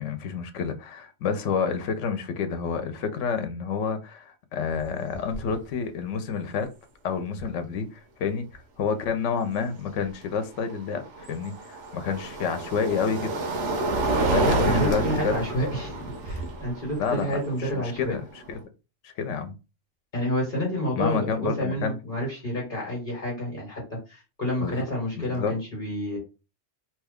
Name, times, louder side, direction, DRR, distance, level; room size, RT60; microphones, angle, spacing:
voice 1, 0.0-6.7 7.0-13.3 14.2-15.4 17.0-18.6 19.0-19.5 20.9-22.0 24.6-24.9 25.2-25.5, left 6 dB, 90° left, 0.9 m, -29 dB
sound 1, 4.7-4.8 5.1-5.6 7.4-7.5 10.5-18.6, right 2 dB, 80° right, 1.0 m, -29 dB
voice 2, 14.1-18.1 20.1-26.2, equal, 45° left, 1.3 m, -29 dB
2.9 x 2.2 x 3.5 m
omnidirectional pair, 1.2 m